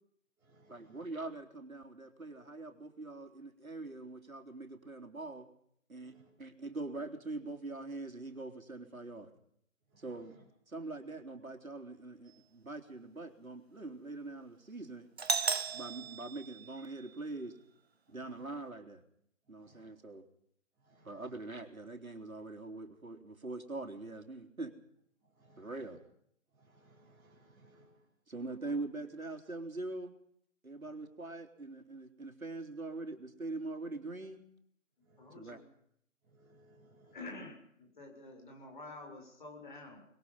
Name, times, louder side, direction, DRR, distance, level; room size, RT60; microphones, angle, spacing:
voice 1, 0.7-5.5 5.9-9.3 10.0-10.4 10.7-15.1 15.7-17.6 18.1-19.0 19.5-20.3 21.0-24.7 25.6-26.0 28.3-30.1 30.6-34.4 35.4-35.6, right 2 dB, 85° right, 5 dB, 3.7 m, -43 dB
Doorbell, 15.2-17.2, right 5 dB, 50° right, 1.6 m, -35 dB
voice 2, 26.6-27.9 35.1-35.2 36.4-37.1, right 2 dB, 10° right, -6 dB, 5.1 m, -63 dB
voice 3, 35.2-35.6 37.1-40.0, left 2 dB, 35° left, 2 dB, 6.7 m, -48 dB
25.0 x 21.5 x 5.6 m, 0.68 s
figure-of-eight pair, 165°, 41 cm